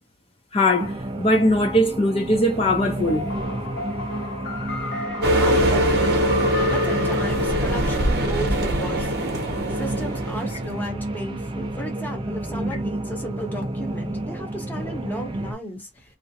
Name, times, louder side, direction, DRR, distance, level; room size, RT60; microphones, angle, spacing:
voice 1, 0.5-3.3, left 1 dB, 35° left, 0.5 m, -20 dB
sound 1, 0.8-15.5, right 1 dB, 30° right, 0.4 m, -31 dB
sound 2, 3.1-8.9, left 2 dB, 70° left, 0.7 m, -34 dB
sound 3, 5.2-10.8, equal, 65° right, 0.7 m, -22 dB
voice 2, 5.4-6.2 6.7-9.1 9.7-16.2, equal, 10° left, 0.9 m, -35 dB
2.4 x 2.1 x 2.7 m
head